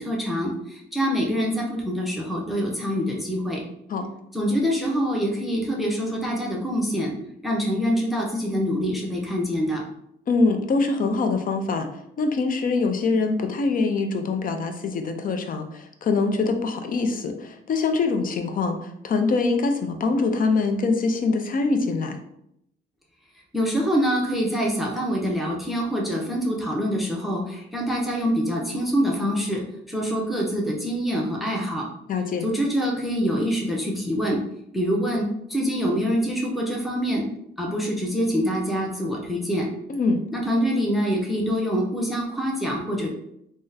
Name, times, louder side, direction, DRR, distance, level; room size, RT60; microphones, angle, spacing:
voice 1, 0.0-3.6 4.3-7.1 7.4-9.8 23.5-29.6 29.9-31.9 32.4-34.4 34.7-37.2 37.6-39.7 40.3-43.1, equal, ahead, -1 dB, 0.7 m, -25 dB
voice 2, 10.3-11.9 12.2-22.2 32.1-32.5 39.9-40.2, left 3 dB, 45° left, 6 dB, 0.5 m, -24 dB
3.5 x 2.1 x 2.7 m, 0.77 s
cardioid pair, 90°, 20 cm